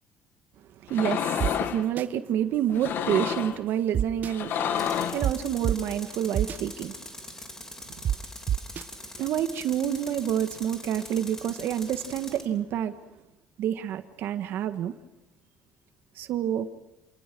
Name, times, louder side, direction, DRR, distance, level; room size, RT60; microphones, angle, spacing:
voice 1, 0.8-6.9 9.2-13.0 13.6-14.9 16.2-16.7, right 10 dB, 70° right, 1.6 m, -28 dB
sound 1, 0.9-1.8 2.7-3.6 4.3-5.3, left 8 dB, 65° left, 1.8 m, -29 dB
sound 2, 1.4-1.5 2.0-2.1 3.9-4.3 5.2-5.3 5.6-5.7 6.3-6.6 8.0-8.1 8.5-8.8, right 10 dB, 50° right, 1.0 m, -25 dB
Tools, 4.8-12.4, left 1 dB, 15° left, 3.1 m, -43 dB
28.5 x 18.5 x 6.1 m
cardioid pair, 120°, 4 cm